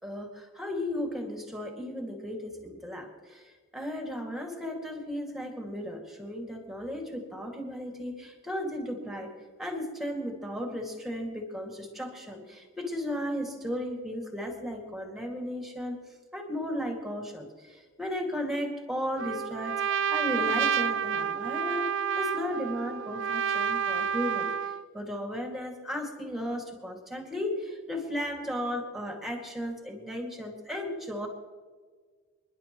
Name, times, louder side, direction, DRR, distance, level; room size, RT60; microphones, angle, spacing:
voice 1, 0.0-3.4 3.7-9.3 9.6-16.0 16.3-21.9 22.1-31.3, equal, ahead, 2 dB, 2.3 m, -35 dB
Trumpet, 19.2-24.9, right 7 dB, 65° right, 0.4 m, -29 dB
29.0 x 11.0 x 3.1 m, 1.5 s
head